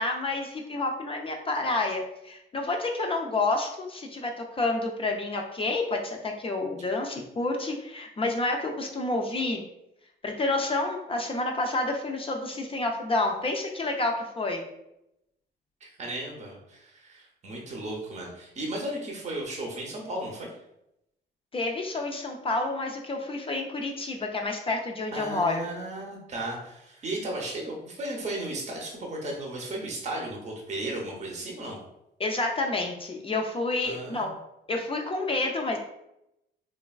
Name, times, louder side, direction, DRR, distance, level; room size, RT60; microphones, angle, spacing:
voice 1, 0.0-9.6 10.2-14.6 21.5-25.7 32.2-34.3 34.7-35.8, left 2 dB, 30° left, 2 dB, 0.4 m, -29 dB
voice 2, 15.8-20.5 25.1-31.8 33.8-34.3, right 1 dB, 35° right, -1 dB, 0.6 m, -35 dB
3.2 x 2.2 x 2.3 m, 0.84 s
cardioid pair, 90°, 20 cm